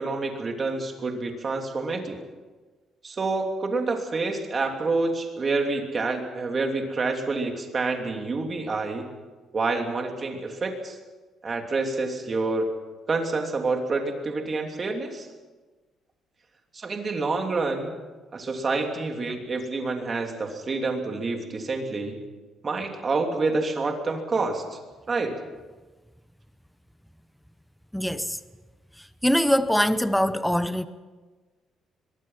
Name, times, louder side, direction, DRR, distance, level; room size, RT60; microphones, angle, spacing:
voice 1, 0.0-2.2 3.0-9.1 9.5-11.0 11.4-12.7 13.1-15.3 16.7-17.9 18.3-22.2 22.6-24.8 25.1-25.4, right 3 dB, 30° right, 3.1 m, -28 dB
voice 2, 27.9-28.4 29.2-30.9, equal, ahead, 0.8 m, -23 dB
23.0 x 22.5 x 5.8 m
cardioid pair, 150°, 0 cm